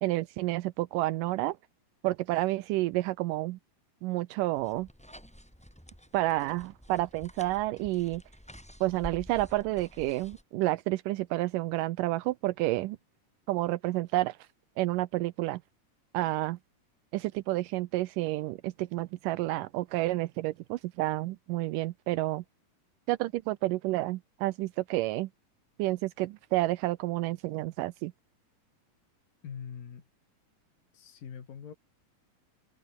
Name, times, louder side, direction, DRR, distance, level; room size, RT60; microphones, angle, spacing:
voice 1, 0.0-1.6 2.0-3.6 4.0-4.9 6.1-8.2 8.8-13.0 13.5-14.4 14.8-15.6 16.1-16.6 17.1-22.4 23.1-25.3 25.8-28.1, right 18 dB, 80° right, 2.2 m, -30 dB
sound 1, 4.6-10.4, equal, ahead, 6.9 m, -49 dB
voice 2, 29.4-30.0 30.9-31.7, left 7 dB, 80° left, 4.9 m, -43 dB
omnidirectional pair, 3.9 m